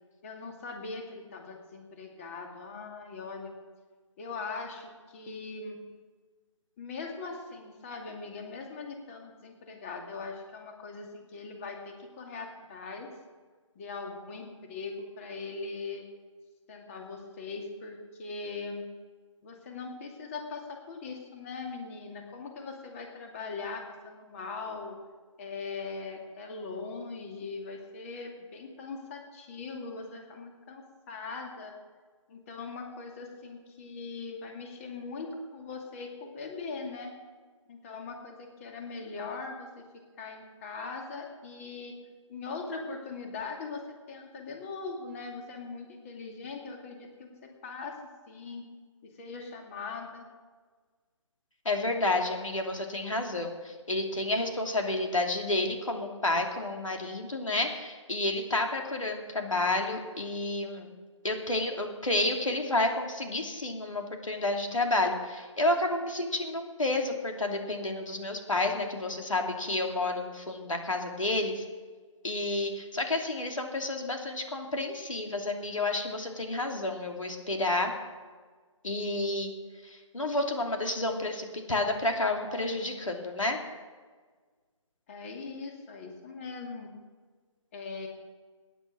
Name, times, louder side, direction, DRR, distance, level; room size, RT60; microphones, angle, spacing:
voice 1, 0.2-3.5 4.2-5.8 6.8-13.1 13.8-16.0 16.7-18.8 19.4-25.0 25.4-31.8 32.3-37.1 37.7-39.9 40.2-42.0 42.3-48.0 48.3-48.6 49.0-50.2 85.1-86.9 87.7-88.1, left 4 dB, 25° left, 2 dB, 2.4 m, -40 dB
voice 2, 51.6-60.9 61.2-71.6 72.2-77.9 78.8-79.5 79.8-83.6, left 2 dB, 75° left, 3 dB, 2.9 m, -30 dB
18.5 x 10.5 x 6.2 m, 1.5 s
figure-of-eight pair, 150°, 17 cm